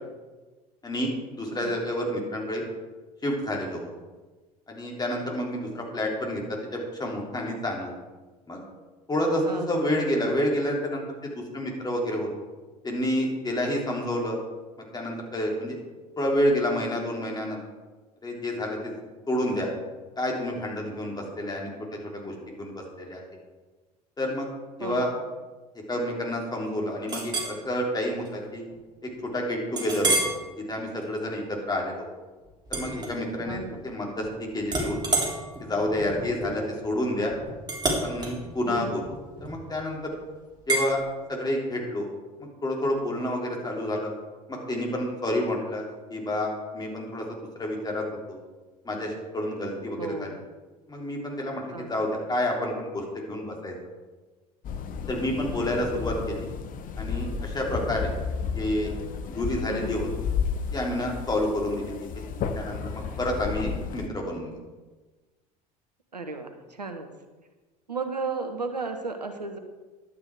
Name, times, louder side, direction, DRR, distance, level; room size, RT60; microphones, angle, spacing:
voice 1, 0.8-2.6 3.2-3.8 4.7-7.9 8.5-8.6 9.1-12.3 12.8-14.4 14.9-15.8 16.2-17.6 18.2-18.9 19.3-19.7 20.2-23.2 24.2-24.5 24.8-25.1 25.9-28.7 29.0-30.3 30.7-32.1 32.7-34.3 34.5-35.0 35.6-37.3 38.0-39.0 39.4-40.1 40.7-41.0 41.3-42.1 42.6-44.1 44.5-48.4 48.8-50.3 50.9-53.7 55.1-56.5 57.0-58.1 58.5-58.9 59.3-60.1 60.7-61.9 62.4-64.6, left 1 dB, 20° left, -1 dB, 3.3 m, -29 dB
voice 2, 9.4-9.8 24.8-25.1 33.5-33.8 38.6-39.0 50.0-50.4 51.7-51.9 59.7-60.0 66.1-67.1 67.9-69.6, right 4 dB, 90° right, 7 dB, 0.9 m, -34 dB
Chink clink, 27.1-27.6 28.1-28.3 28.7-28.8 29.8-30.4 30.9-31.2 32.7-33.6 33.9-34.3 34.7-39.8 40.7-40.9, right 2 dB, 20° right, 3.4 m, -29 dB
sound 1, 54.6-64.1, left 6 dB, 40° left, 1.0 m, -32 dB
11.5 x 8.8 x 4.9 m, 1.3 s
figure-of-eight pair, 65°, 20 cm